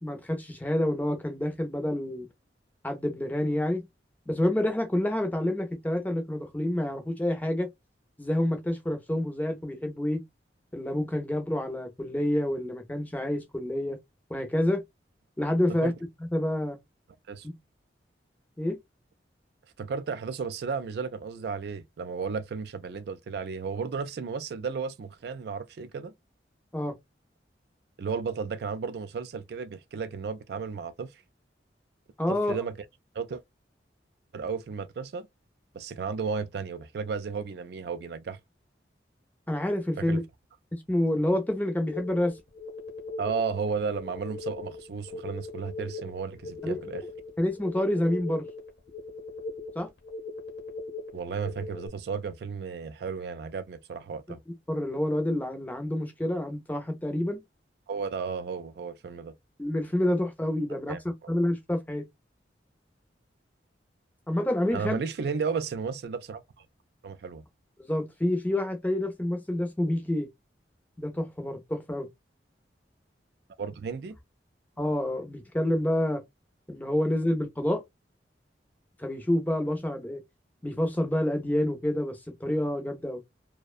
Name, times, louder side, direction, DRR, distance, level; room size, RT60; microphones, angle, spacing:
voice 1, 0.0-2.3 2.8-3.8 4.3-7.7 8.2-10.2 10.7-14.0 14.3-14.8 15.4-15.9 16.3-16.8 18.6-18.8 26.7-26.9 32.2-32.6 39.5-40.2 40.7-42.3 46.6-46.8 47.4-48.5 49.8-49.9 54.7-57.4 59.6-61.0 61.3-62.1 64.3-65.0 67.9-70.3 71.0-72.1 74.8-76.2 76.7-77.8 79.0-80.2 80.6-83.2, left 1 dB, 10° left, 0.5 m, -28 dB
voice 2, 19.8-26.1 28.0-31.2 32.3-32.7 33.1-33.4 34.3-35.3 35.7-38.4 40.0-40.2 43.2-47.0 51.1-54.4 57.9-59.3 60.7-61.3 64.7-66.7 67.0-67.4 73.6-74.2, right 5 dB, 60° right, 0.3 m, -34 dB
sound 1, 41.9-51.9, left 3 dB, 75° left, 0.8 m, -40 dB
2.5 x 2.1 x 2.3 m
head